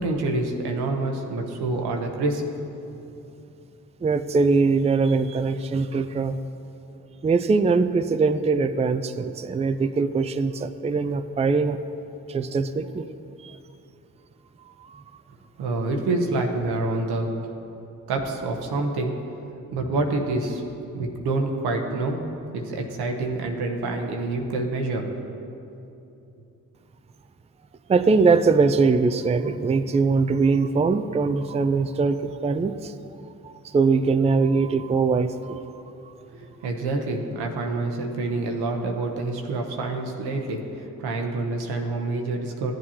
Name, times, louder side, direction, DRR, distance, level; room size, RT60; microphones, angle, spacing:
voice 1, 0.0-2.4 15.6-17.3 18.1-19.1 19.7-20.6 20.9-22.2 22.5-25.1 36.3-42.7, right 2 dB, 85° right, 3 dB, 0.9 m, -27 dB
voice 2, 4.0-6.4 7.2-11.8 12.3-13.1 13.4-13.6 14.9-15.0 27.9-32.9 33.4-35.6, right 4 dB, 15° right, 10 dB, 0.4 m, -22 dB
14.0 x 7.7 x 2.8 m, 2.8 s
supercardioid pair, 40°, 38 cm